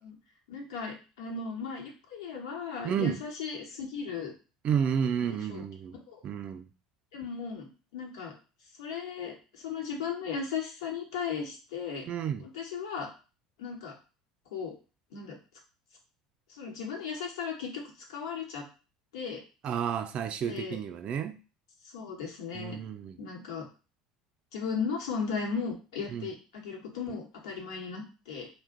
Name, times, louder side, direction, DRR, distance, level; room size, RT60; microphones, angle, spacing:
voice 1, 0.5-4.3 5.3-5.6 6.1-6.2 7.1-8.3 8.8-12.0 12.4-13.1 13.6-13.9 14.5-14.7 15.1-15.4 16.5-17.8 18.1-18.6 19.1-19.4 20.4-20.8 21.9-22.8 23.2-23.7 24.5-28.5, left 5 dB, 80° left, 0 dB, 0.9 m, -36 dB
voice 2, 2.8-3.2 4.6-6.0 6.2-6.7 12.1-12.5 19.6-21.4 22.5-23.2 26.1-26.3, right 8 dB, 45° right, 8 dB, 0.4 m, -31 dB
2.4 x 2.1 x 3.6 m, 0.33 s
hypercardioid pair, 75°, 3 cm